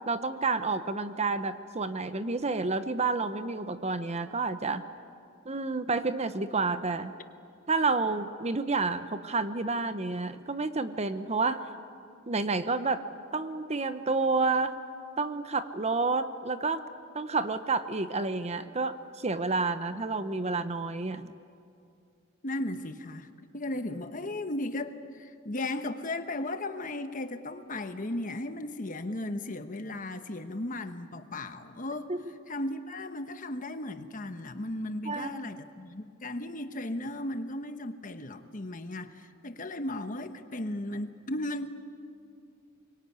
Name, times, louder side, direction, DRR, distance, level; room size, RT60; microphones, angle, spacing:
voice 1, 0.1-4.8 5.4-7.1 7.7-11.6 12.3-13.0 13.3-14.8 15.2-16.8 17.1-21.3 32.1-32.2 35.0-35.4, right 3 dB, 30° right, 11 dB, 0.9 m, -29 dB
voice 2, 22.4-32.1 32.5-41.7, left 1 dB, 40° left, 9 dB, 1.2 m, -36 dB
24.0 x 22.5 x 9.4 m, 2.4 s
head